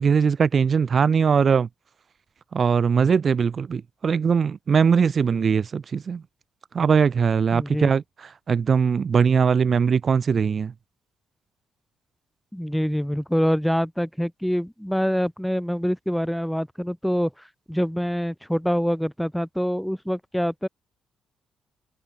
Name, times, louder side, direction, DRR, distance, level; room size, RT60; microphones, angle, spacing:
voice 1, 0.0-1.7 2.5-6.2 6.7-8.0 8.5-10.7, right 6 dB, 45° right, 4.5 m, -20 dB
voice 2, 7.5-7.9 12.5-17.3 17.7-20.7, equal, ahead, 5.9 m, -25 dB
cardioid pair, 90°, 0 cm